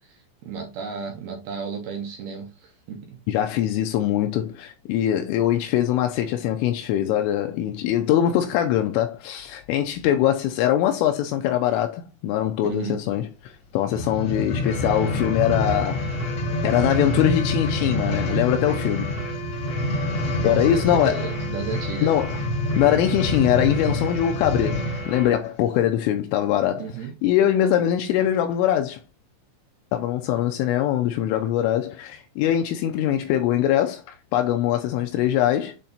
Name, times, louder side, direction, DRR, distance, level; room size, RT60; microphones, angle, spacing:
voice 1, 0.0-3.2 12.6-13.0 20.4-22.1 26.8-27.1, right 6 dB, 80° right, 2.2 m, -34 dB
voice 2, 3.3-16.0 16.6-19.2 20.4-21.3 22.0-22.4 22.8-26.9 27.2-29.0 29.9-35.7, left 11 dB, 80° left, 3.0 m, -22 dB
sound 1, 13.8-25.2 25.8-25.9, left 1 dB, 60° left, 1.6 m, -27 dB
sound 2, 14.6-25.4, right 2 dB, ahead, 0.3 m, -36 dB
8.6 x 3.3 x 4.0 m
omnidirectional pair, 6.0 m